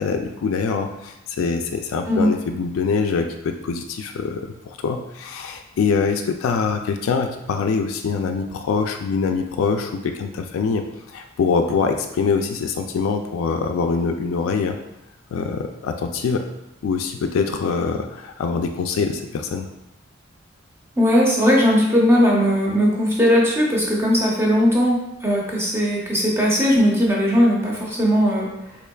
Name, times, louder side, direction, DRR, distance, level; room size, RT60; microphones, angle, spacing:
voice 1, 0.0-14.8 15.3-16.4 16.8-19.7, left 5 dB, 80° left, 5 dB, 0.3 m, -24 dB
voice 2, 21.0-28.5, equal, 10° right, -4 dB, 0.7 m, -18 dB
3.5 x 3.3 x 2.3 m, 0.90 s
head